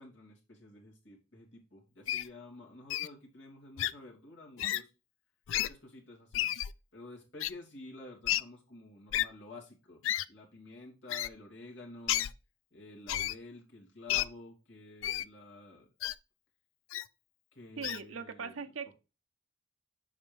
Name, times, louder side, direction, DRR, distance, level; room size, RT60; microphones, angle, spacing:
voice 1, 0.0-4.9 5.7-6.5 6.9-10.0 10.3-12.3 12.7-15.9 17.5-18.6, left 2 dB, 65° left, 2.8 m, -50 dB
Wild animals, 2.1-2.3 2.9-3.1 3.8-3.9 4.6-4.8 5.5-5.7 6.3-6.7 7.4-7.5 8.3-8.4 9.1-9.3 10.0-10.3 11.1-11.3 12.1-12.3 13.1-13.4 14.1-14.3 15.0-15.3 16.0-16.1 16.9-17.1 17.8-18.0, left 12 dB, 85° left, 0.4 m, -31 dB
voice 2, 17.8-18.9, right 5 dB, 90° right, 0.6 m, -40 dB
7.5 x 5.2 x 3.4 m
head